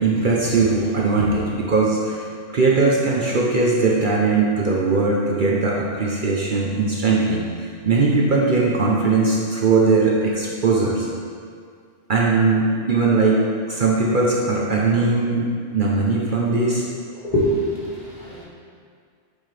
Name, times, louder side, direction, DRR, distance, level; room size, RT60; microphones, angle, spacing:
voice 1, 0.0-11.1 12.1-16.8, right 3 dB, 50° right, -3 dB, 0.9 m, -20 dB
voice 2, 17.1-18.4, equal, 40° left, -7 dB, 1.9 m, -24 dB
7.3 x 7.2 x 3.4 m, 2.1 s
omnidirectional pair, 1.2 m